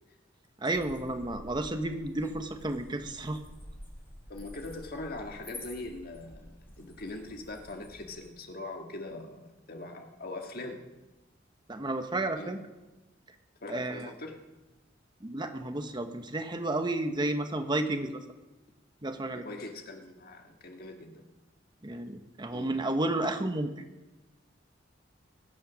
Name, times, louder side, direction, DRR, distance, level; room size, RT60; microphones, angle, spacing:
voice 1, 0.6-3.4 11.7-12.6 13.7-14.1 15.2-18.2 19.0-19.4 21.8-23.7, right 2 dB, 25° right, 7 dB, 1.0 m, -32 dB
sound 1, 0.7-8.3, left 1 dB, 10° left, 3.8 m, -49 dB
voice 2, 4.3-10.8 12.3-12.6 13.6-14.4 19.3-21.3 22.5-22.8, left 2 dB, 55° left, 3 dB, 1.9 m, -42 dB
22.5 x 8.9 x 6.3 m, 1.1 s
head